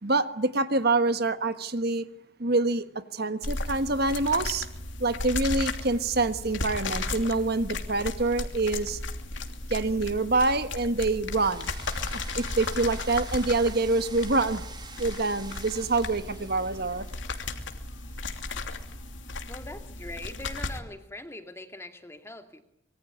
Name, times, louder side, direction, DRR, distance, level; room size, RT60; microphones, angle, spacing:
voice 1, 0.0-2.1 2.4-2.9 3.1-4.7 5.0-9.0 9.7-11.7 12.4-14.6 15.0-17.1, right 3 dB, 50° right, 10 dB, 1.4 m, -26 dB
sound 1, 3.4-20.8, left 3 dB, 65° left, 2.9 m, -35 dB
sound 2, 11.3-19.4, right 5 dB, 20° right, 2.4 m, -48 dB
voice 2, 19.5-22.6, left 2 dB, 15° left, 6 dB, 2.4 m, -42 dB
25.0 x 23.0 x 9.4 m, 0.80 s
head